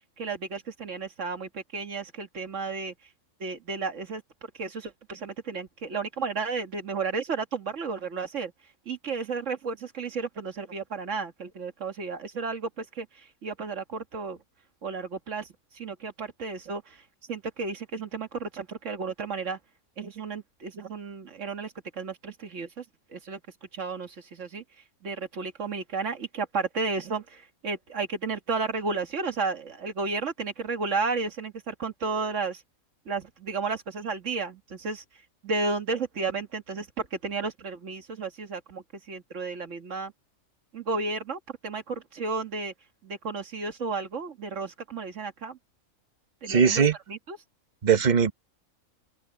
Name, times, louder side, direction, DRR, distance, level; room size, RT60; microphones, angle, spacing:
voice 1, 0.2-2.9 3.4-4.2 4.5-8.5 8.9-14.4 14.8-15.5 15.7-17.0 17.3-19.6 20.0-22.8 23.1-23.4 23.7-24.6 25.0-32.6 33.1-35.0 35.4-40.1 40.7-42.7 43.0-45.6 46.4-47.4, right 4 dB, 60° right, 2.0 m, -33 dB
voice 2, 46.5-46.9 47.8-48.3, right 6 dB, 35° right, 1.1 m, -20 dB
open air
omnidirectional pair, 1.5 m